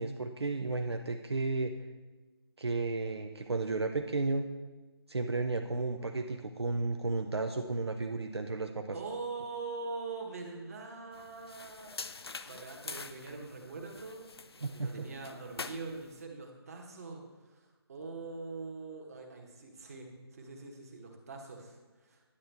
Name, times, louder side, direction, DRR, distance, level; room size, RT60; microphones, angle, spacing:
voice 1, 0.0-1.7 2.6-4.5 5.1-9.0 14.6-14.9, right 3 dB, 70° right, 5 dB, 0.6 m, -33 dB
voice 2, 8.9-14.3 14.6-22.3, right 3 dB, 35° right, 2 dB, 1.2 m, -43 dB
sound 1, 11.1-16.2, left 4 dB, 70° left, 0.5 m, -46 dB
9.8 x 7.5 x 3.4 m, 1.2 s
figure-of-eight pair, 150°, 14 cm